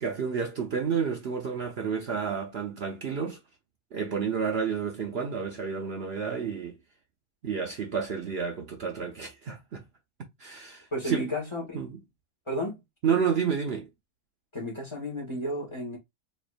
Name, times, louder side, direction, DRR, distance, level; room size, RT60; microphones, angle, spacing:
voice 1, 0.0-3.4 3.9-6.8 7.4-9.8 10.4-11.3 11.7-12.0 13.0-13.9, right 6 dB, 65° right, 0.6 m, -30 dB
voice 2, 10.9-11.8 12.5-12.8 14.5-16.0, equal, 20° left, 1.6 m, -32 dB
3.6 x 3.2 x 2.5 m
omnidirectional pair, 1.8 m